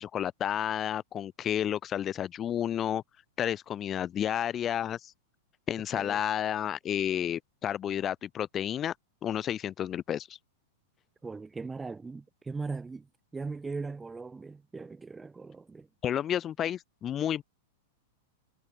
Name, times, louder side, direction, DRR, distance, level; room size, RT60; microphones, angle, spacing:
voice 1, 0.0-3.0 3.4-5.1 5.7-8.9 9.2-10.3 16.0-17.4, left 10 dB, 30° left, 2.0 m, -31 dB
voice 2, 11.2-13.1 13.3-15.9, right 4 dB, 15° right, 2.3 m, -39 dB
hypercardioid pair, 105°, 0 cm